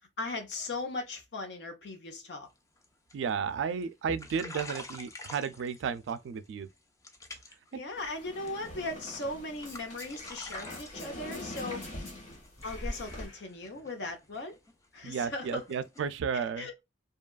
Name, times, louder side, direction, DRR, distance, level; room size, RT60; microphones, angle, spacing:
voice 1, 0.2-2.5 7.7-11.8 12.6-14.6 14.9-15.6 16.3-16.7, left 2 dB, 60° left, 0.7 m, -38 dB
sound 1, 2.6-2.9 3.1-3.5 3.8-6.2 6.4-6.8 7.0-7.7 8.0-8.7 9.1-9.3 9.6-16.0, left 2 dB, 15° left, 0.4 m, -47 dB
voice 2, 3.1-6.7 7.7-7.8 15.0-16.7, right 6 dB, 65° right, 0.3 m, -33 dB
sound 2, 8.0-13.3, left 1 dB, 35° left, 1.0 m, -43 dB
sound 3, 9.6-10.2 10.7-12.2 12.6-14.0, left 2 dB, 85° left, 1.3 m, -51 dB
2.7 x 2.3 x 2.3 m
head